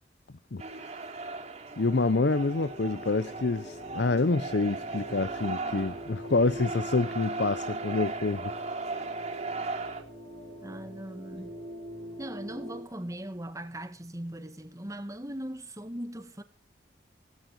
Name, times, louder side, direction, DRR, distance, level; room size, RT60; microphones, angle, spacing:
voice 1, 0.5-0.8 1.8-8.5, left 3 dB, 65° left, 0.7 m, -27 dB
sound 1, 0.6-10.0, right 3 dB, 40° right, 3.6 m, -37 dB
sound 2, 1.8-12.8, right 1 dB, 30° left, 6.9 m, -43 dB
voice 2, 10.6-11.6 12.2-16.4, right 1 dB, 20° right, 1.7 m, -39 dB
17.0 x 17.0 x 4.7 m
head